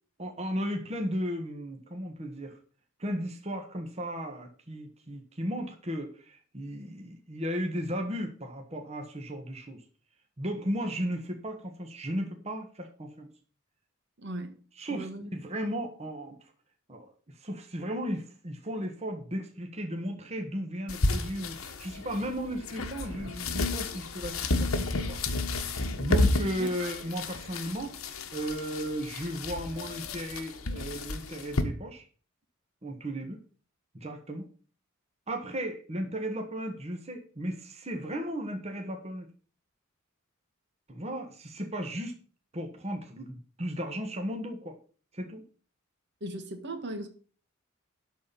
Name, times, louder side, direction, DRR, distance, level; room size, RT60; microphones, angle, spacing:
voice 1, 0.2-2.6 3.0-9.8 10.4-13.3 14.8-16.5 16.9-25.2 26.0-28.0 28.3-32.0 32.8-33.4 33.9-34.4 35.3-39.3 40.9-42.1 42.5-44.8 45.1-45.4, equal, 30° right, 1.5 m, -35 dB
voice 2, 14.2-14.5 14.9-15.2 26.6-26.9 46.2-47.1, right 1 dB, 55° right, 1.7 m, -38 dB
sound 1, 20.9-31.6, left 2 dB, 85° left, 1.4 m, -31 dB
12.5 x 4.3 x 7.4 m
head